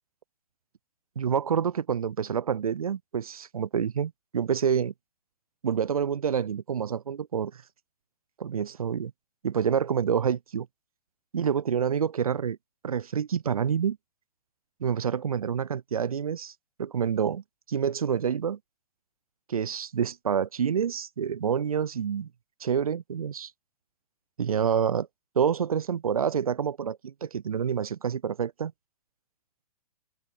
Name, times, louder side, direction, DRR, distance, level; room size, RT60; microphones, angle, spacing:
voice 1, 1.2-4.9 5.6-7.6 8.4-9.1 9.4-10.7 11.3-12.6 12.8-14.0 14.8-16.5 16.8-18.6 19.5-22.3 22.6-23.5 24.4-25.1 25.4-28.7, right 7 dB, 65° right, 0.6 m, -27 dB
open air
figure-of-eight pair, 115°, 20 cm